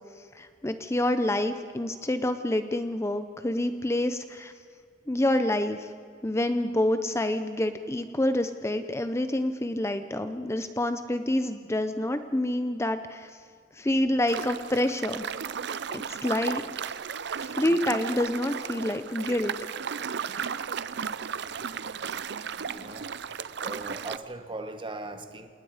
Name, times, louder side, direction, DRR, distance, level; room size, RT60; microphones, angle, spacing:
voice 1, 0.3-4.5 5.1-5.9 6.2-13.3 13.7-15.2 15.9-16.6 17.4-19.5, left 1 dB, 15° left, 9 dB, 0.7 m, -27 dB
sound 1, 14.3-24.2, right 7 dB, 65° right, 0.6 m, -35 dB
voice 2, 22.6-23.1 23.6-25.5, right 2 dB, 25° right, 8 dB, 1.4 m, -39 dB
28.0 x 19.0 x 5.0 m, 2.2 s
head